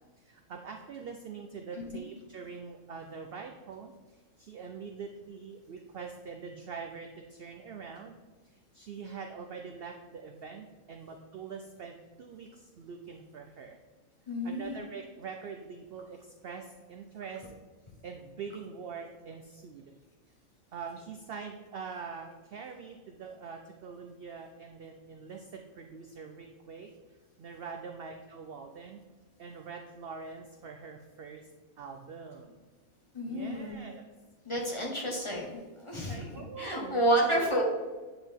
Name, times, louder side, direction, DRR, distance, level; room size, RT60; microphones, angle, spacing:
voice 1, 0.3-3.9 4.4-8.1 8.7-13.8 14.4-17.5 18.0-19.8 20.7-26.9 27.4-29.0 29.4-31.4 31.8-32.6 33.2-34.1 36.0-37.0, right 5 dB, 65° right, 4 dB, 0.6 m, -44 dB
voice 2, 14.3-14.8 33.1-33.9 34.4-36.2 36.6-37.6, right 1 dB, 25° left, -2 dB, 1.1 m, -30 dB
9.1 x 3.8 x 3.5 m, 1.3 s
omnidirectional pair, 1.5 m